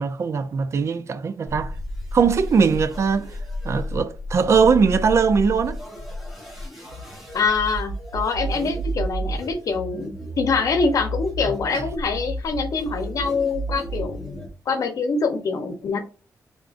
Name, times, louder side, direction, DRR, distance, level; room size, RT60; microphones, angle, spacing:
voice 1, 0.0-1.7 2.1-3.3 3.6-5.8 8.5-8.7 11.7-11.8, right 5 dB, 45° right, 0.4 m, -20 dB
sound 1, 1.5-14.5, equal, 5° right, 1.4 m, -32 dB
voice 2, 7.3-14.2 14.7-16.0, left 4 dB, 60° left, 0.8 m, -24 dB
3.7 x 3.5 x 2.5 m
wide cardioid pair, 160°, 7 cm